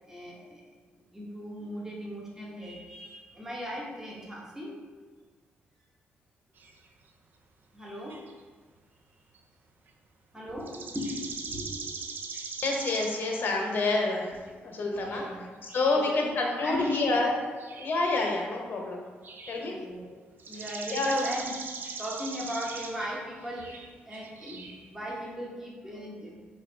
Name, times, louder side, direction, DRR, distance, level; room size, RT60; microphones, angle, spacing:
voice 1, 0.0-0.6 1.1-4.8 7.7-8.3 10.3-12.0 14.9-15.4 16.0-16.3 16.6-17.3 19.5-20.1 20.5-21.5 21.9-26.4, equal, 10° right, -4 dB, 0.9 m, -38 dB
sound 1, 6.6-6.8 8.1-8.4 9.3-9.4 9.9-10.0 10.7-13.2 13.5-13.6 14.5-14.6 15.1-15.3 15.7-17.3 17.6-18.0 18.4-18.5 19.2-19.7 20.4-24.9, right 4 dB, 55° right, 0.4 m, -41 dB
voice 2, 12.6-14.3 14.6-15.2 15.7-17.3 17.8-19.0 19.5-19.8 20.9-21.3, left 3 dB, 55° left, 0 dB, 0.8 m, -27 dB
3.2 x 2.4 x 4.3 m, 1.5 s
cardioid pair, 80°, 4 cm